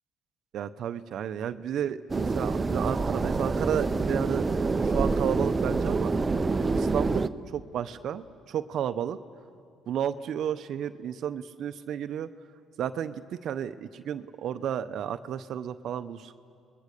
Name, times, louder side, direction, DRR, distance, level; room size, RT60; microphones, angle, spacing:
voice 1, 0.5-4.5 4.7-6.1 6.6-9.2 9.9-12.3 12.8-16.4, right 9 dB, 65° right, 11 dB, 0.7 m, -32 dB
sound 1, 2.1-7.3, right 3 dB, 30° right, 0.7 m, -27 dB
29.0 x 21.0 x 6.7 m, 2.4 s
supercardioid pair, 80°, 0 cm